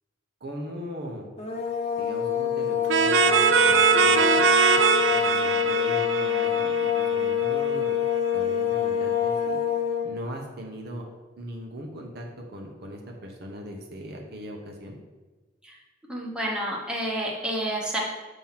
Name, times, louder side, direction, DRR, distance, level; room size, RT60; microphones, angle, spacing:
voice 1, 0.4-1.3 2.0-4.5 5.1-7.9 8.3-9.6 10.0-11.1 11.4-15.0, equal, 60° right, 0 dB, 1.0 m, -39 dB
sound 1, 1.4-10.1, left 8 dB, 35° left, 0.8 m, -26 dB
sound 2, 2.9-7.5, right 7 dB, 85° right, 0.4 m, -22 dB
voice 2, 16.1-18.0, right 1 dB, 5° right, -3 dB, 1.1 m, -29 dB
7.2 x 3.0 x 5.8 m, 1.2 s
head